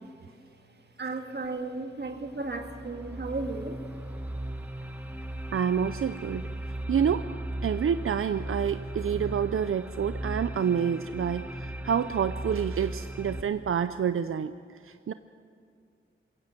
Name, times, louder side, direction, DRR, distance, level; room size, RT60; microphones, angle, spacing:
voice 1, 1.0-3.8, right 3 dB, 55° right, 5 dB, 2.0 m, -34 dB
sound 1, 2.1-13.4, right 1 dB, 10° right, 1.3 m, -37 dB
voice 2, 5.5-6.5 6.9-7.3 7.6-15.1, right 7 dB, 85° right, 12 dB, 0.5 m, -28 dB
21.5 x 16.5 x 7.7 m, 2.4 s
wide cardioid pair, 90°, 21 cm